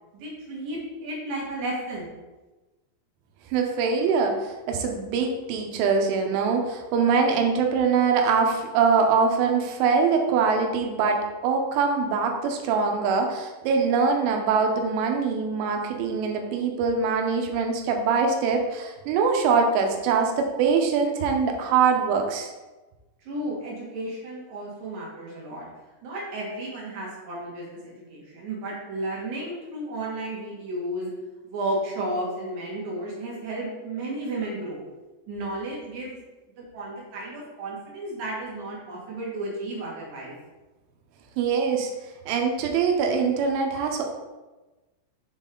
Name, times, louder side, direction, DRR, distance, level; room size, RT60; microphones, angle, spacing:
voice 1, 0.1-2.0 22.4-22.5 23.3-25.7 26.0-31.1 31.4-34.8 35.3-36.2 36.6-40.3, right 1 dB, 60° right, -4 dB, 2.1 m, -33 dB
voice 2, 3.5-22.5 41.4-41.9 42.3-44.1, right 5 dB, 85° right, 3 dB, 3.2 m, -23 dB
7.2 x 4.1 x 3.8 m, 1.2 s
omnidirectional pair, 5.4 m